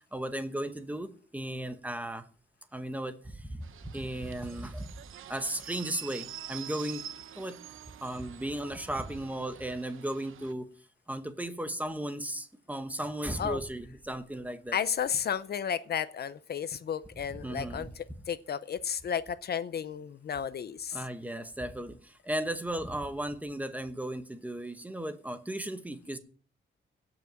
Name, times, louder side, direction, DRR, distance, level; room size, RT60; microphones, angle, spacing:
voice 1, 0.1-2.3 2.7-4.9 5.3-7.0 7.3-7.6 8.0-10.7 11.1-14.8 17.4-17.9 20.9-26.2, right 1 dB, 5° right, 1.0 m, -35 dB
sound 1, 3.6-10.5, right 10 dB, 75° right, 0.8 m, -46 dB
voice 2, 14.7-17.9 18.3-21.0, left 8 dB, 50° left, 0.6 m, -33 dB
16.5 x 6.0 x 7.6 m
wide cardioid pair, 175°, 21 cm